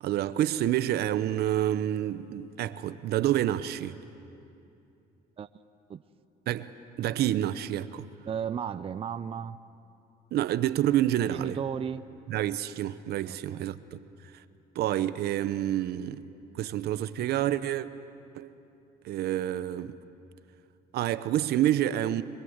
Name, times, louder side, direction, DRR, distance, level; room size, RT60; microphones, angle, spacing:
voice 1, 0.0-4.0 6.5-6.7 7.0-8.1 10.3-11.6 12.3-14.0 14.7-16.2 16.5-17.9 18.3-18.5 19.0-20.0 20.9-22.2, right 12 dB, 70° right, 0.9 m, -28 dB
voice 2, 8.3-9.6 11.3-12.1 13.2-13.6, right 8 dB, 35° right, 0.6 m, -34 dB
25.0 x 23.0 x 8.1 m
cardioid pair, 110°, 17 cm